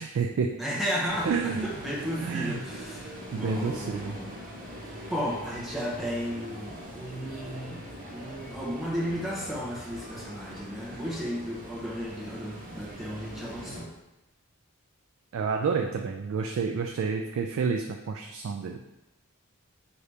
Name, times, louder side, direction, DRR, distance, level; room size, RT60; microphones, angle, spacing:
voice 1, 0.0-0.5 1.2-1.7 2.2-2.6 3.3-4.2 15.3-18.8, right 5 dB, 70° right, 3 dB, 0.3 m, -29 dB
voice 2, 0.6-4.4 4.8-7.8 8.1-13.9, equal, ahead, -6 dB, 0.8 m, -34 dB
sound 1, 1.1-13.8, equal, 40° right, 0.8 m, -42 dB
4.8 x 2.8 x 3.3 m, 0.97 s
head